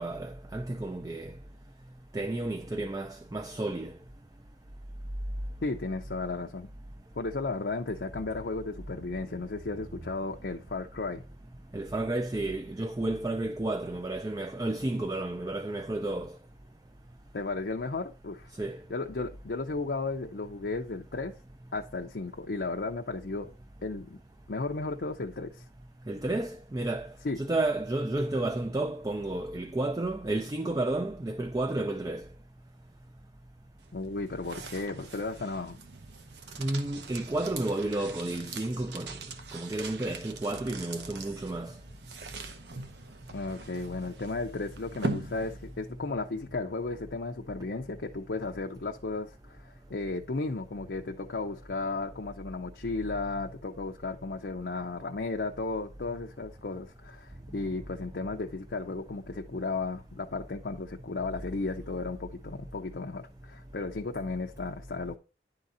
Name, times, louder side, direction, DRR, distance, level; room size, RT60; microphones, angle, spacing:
voice 1, 0.0-1.3 2.1-3.9 11.7-16.3 18.6-18.8 26.1-27.1 27.4-32.2 36.6-39.2 39.5-41.7, right 2 dB, 20° right, 0.4 m, -31 dB
voice 2, 5.6-6.7 7.2-11.2 17.3-18.5 18.9-21.4 21.7-23.5 23.8-24.2 24.5-25.6 27.2-27.4 33.9-35.8 43.3-65.2, left 3 dB, 65° left, 0.6 m, -34 dB
sound 1, 33.8-46.0, right 2 dB, 75° right, 0.8 m, -41 dB
10.5 x 3.8 x 4.2 m
head